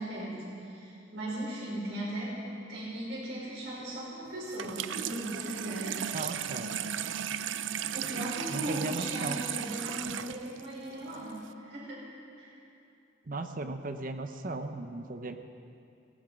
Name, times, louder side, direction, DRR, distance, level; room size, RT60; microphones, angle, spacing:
voice 1, 0.0-6.4 7.9-12.0 12.4-12.6, right 1 dB, 75° right, -7 dB, 4.6 m, -38 dB
Water tap faucet / Sink (filling or washing), 4.5-11.5, right 9 dB, 90° right, 0.5 m, -36 dB
voice 2, 6.1-6.7 8.5-9.4 13.3-15.4, right 2 dB, 50° right, 7 dB, 0.8 m, -37 dB
17.0 x 15.5 x 5.2 m, 2.5 s
head